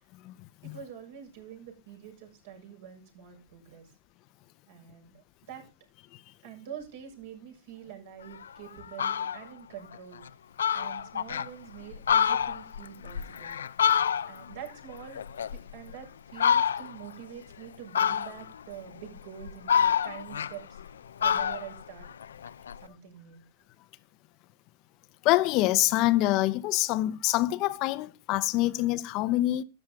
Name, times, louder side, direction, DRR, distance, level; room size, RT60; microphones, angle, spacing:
voice 1, 0.6-3.9 4.7-5.7 6.4-10.3 10.7-13.6 14.3-22.1 22.8-23.4, right 9 dB, 60° right, 6.9 m, -46 dB
Fowl, 8.4-8.5 8.8-9.4 9.9-10.0 10.3-10.4 10.6-11.5 11.9-14.6 14.9-15.9 16.4-17.1 17.9-18.6 19.2-20.9 21.2-22.8, left 8 dB, 85° left, 0.7 m, -27 dB
voice 2, 25.2-29.6, left 17 dB, 40° left, 0.8 m, -25 dB
13.0 x 10.5 x 3.6 m
hypercardioid pair, 130°, 0 cm